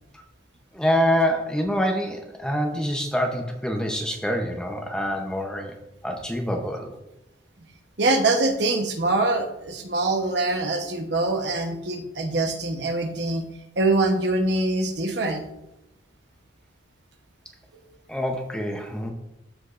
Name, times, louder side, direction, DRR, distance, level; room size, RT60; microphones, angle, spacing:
voice 1, 0.7-5.7 6.0-7.0 18.1-19.1, equal, 5° left, 2 dB, 0.7 m, -26 dB
voice 2, 8.0-13.5 13.8-15.4, right 2 dB, 55° right, 4 dB, 1.0 m, -24 dB
14.0 x 5.2 x 2.5 m, 0.90 s
head